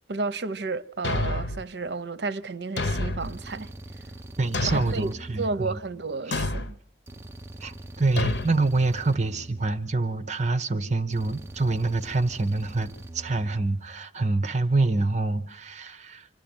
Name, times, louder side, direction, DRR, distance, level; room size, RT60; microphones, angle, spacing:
voice 1, 0.1-3.7 4.7-5.1 5.4-6.8, right 3 dB, 70° right, 0.8 m, -32 dB
Thump thud, 1.0-1.7 2.8-3.4 4.5-5.1 6.3-6.7 8.2-8.5, left 2 dB, 80° left, 1.1 m, -28 dB
sound 1, 3.2-6.3 7.1-10.3 11.1-14.0, right 1 dB, 15° right, 0.8 m, -43 dB
voice 2, 4.4-5.8 6.3-6.4 7.6-16.3, right 3 dB, 40° right, 1.1 m, -26 dB
26.0 x 12.5 x 9.0 m
head